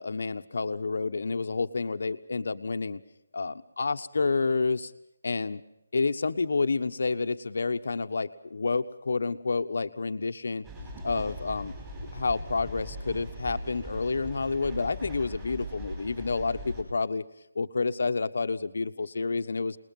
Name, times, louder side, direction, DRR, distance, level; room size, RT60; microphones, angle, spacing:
voice 1, 0.0-3.0 3.3-4.9 5.2-5.6 5.9-10.6 11.0-11.7 12.1-17.2 17.5-19.8, left 4 dB, 50° left, 10 dB, 1.3 m, -29 dB
sound 1, 10.6-16.8, right 1 dB, 10° right, 4.7 m, -40 dB
28.5 x 20.5 x 5.6 m, 0.79 s
hypercardioid pair, 180°, 0 cm